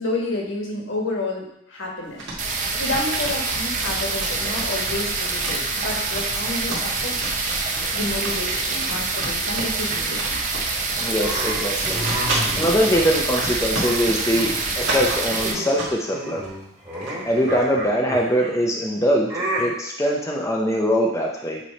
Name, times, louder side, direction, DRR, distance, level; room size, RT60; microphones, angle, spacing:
voice 1, 0.0-2.2 2.8-7.2 7.9-10.4, left 2 dB, 65° left, -1 dB, 1.4 m, -29 dB
sound 1, 2.0-16.1 16.4-17.5, right 2 dB, 60° right, 1.8 m, -31 dB
sound 2, 2.4-15.5, right 3 dB, 40° right, 0.8 m, -26 dB
voice 2, 11.0-12.0 12.6-16.4 17.2-21.6, equal, 15° left, -1 dB, 0.5 m, -22 dB
sound 3, 11.2-13.4 13.8-14.6 14.9-15.2 15.4-15.9 16.1-18.6 19.3-19.6, right 1 dB, 15° right, 1.6 m, -31 dB
8.4 x 3.1 x 4.2 m, 0.80 s
head